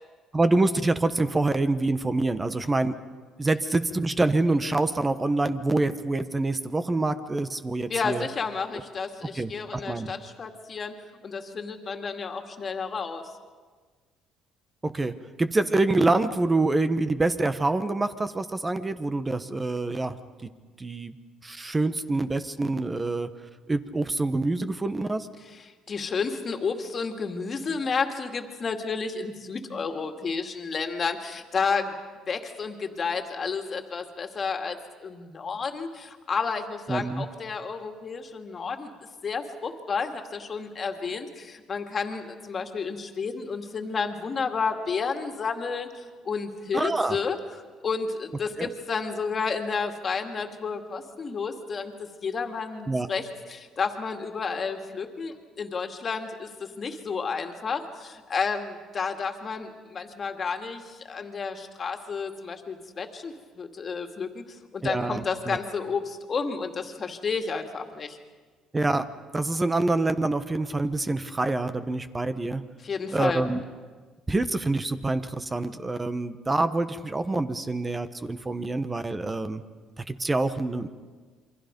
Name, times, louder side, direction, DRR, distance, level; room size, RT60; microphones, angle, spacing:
voice 1, 0.3-2.9 3.4-8.3 9.3-10.1 14.8-15.1 15.4-20.2 20.8-21.1 21.4-23.3 23.7-25.3 36.9-37.2 46.7-47.2 48.6-48.7 52.9-53.1 64.8-65.6 68.7-69.0 69.3-72.6 73.1-73.6 74.3-79.6 80.0-80.9, right 2 dB, 20° right, 10 dB, 1.1 m, -26 dB
voice 2, 7.9-11.0 11.2-13.2 25.9-31.9 32.3-38.9 39.2-47.4 47.8-51.9 52.2-64.4 64.7-68.2 72.8-73.4, left 5 dB, 40° left, 5 dB, 2.3 m, -31 dB
28.0 x 23.5 x 5.3 m, 1.4 s
cardioid pair, 105°, 0 cm